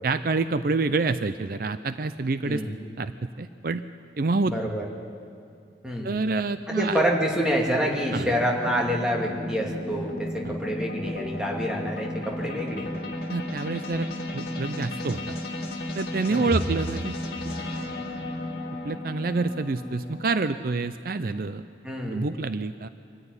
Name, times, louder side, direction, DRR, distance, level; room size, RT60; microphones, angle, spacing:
voice 1, 0.0-2.6 3.0-3.8 4.2-4.5 6.0-7.0 8.1-8.3 10.4-10.6 13.3-14.1 14.3-15.2 16.0-17.2 17.4-17.5 18.8-21.7 22.1-22.9, right 3 dB, 50° right, 11 dB, 0.5 m, -27 dB
voice 2, 2.4-2.8 4.4-4.8 5.8-6.1 6.7-12.9 16.3-16.5 21.8-22.3, equal, 5° right, -2 dB, 2.5 m, -27 dB
sound 1, 6.2-20.4, left 1 dB, 55° left, 2.7 m, -34 dB
24.5 x 14.0 x 9.7 m, 2.5 s
head